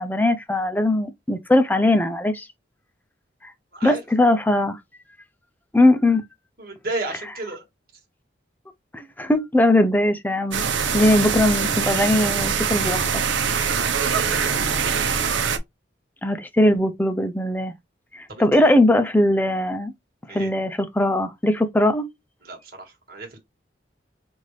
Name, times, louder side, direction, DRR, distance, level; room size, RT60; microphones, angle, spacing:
voice 1, 0.0-2.5 3.4-3.5 3.8-4.8 5.7-6.2 8.9-10.6 10.9-13.2 16.2-17.7 18.1-19.9 20.3-22.1, left 1 dB, 10° left, 0.5 m, -20 dB
voice 2, 6.6-7.6 13.8-15.0 18.3-18.7 20.3-20.5 22.4-23.4, right 2 dB, 50° right, 1.6 m, -34 dB
sound 1, 10.5-15.6, right 6 dB, 85° right, 0.8 m, -23 dB
5.7 x 2.6 x 3.2 m
head